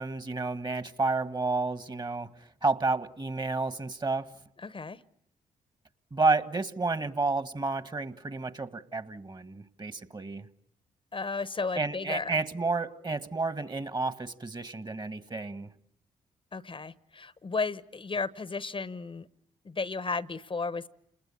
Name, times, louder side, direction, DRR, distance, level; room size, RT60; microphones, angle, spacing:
voice 1, 0.0-2.3 2.6-4.3 6.1-10.5 11.7-15.7, right 3 dB, 30° right, 12 dB, 1.7 m, -30 dB
voice 2, 4.6-5.0 11.1-12.4 16.5-19.3 19.6-20.9, left 4 dB, 35° left, 16 dB, 1.0 m, -34 dB
29.5 x 20.5 x 8.5 m, 0.74 s
hypercardioid pair, 45°, 15 cm